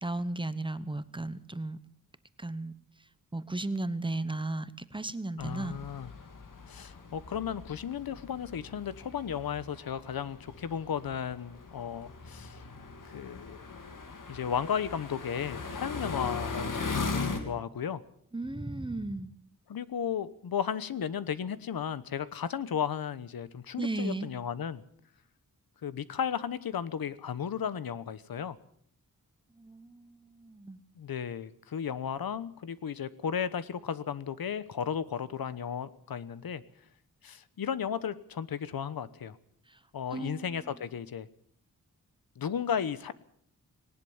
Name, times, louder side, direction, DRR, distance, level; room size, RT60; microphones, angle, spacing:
voice 1, 0.0-1.8 2.4-2.7 3.3-5.8 18.3-19.3 23.8-24.3 29.6-30.0 30.4-30.8 40.1-40.4, right 2 dB, 15° right, 13 dB, 0.9 m, -34 dB
voice 2, 5.4-6.1 6.7-12.6 13.1-13.6 14.3-18.0 19.7-24.8 25.8-28.6 31.0-36.6 37.2-39.4 39.9-41.3 42.4-43.1, left 8 dB, 85° left, 15 dB, 1.1 m, -34 dB
sound 1, 5.4-17.4, left 4 dB, 65° left, 2.9 m, -39 dB
19.5 x 19.0 x 7.3 m, 0.63 s
wide cardioid pair, 160°, 35 cm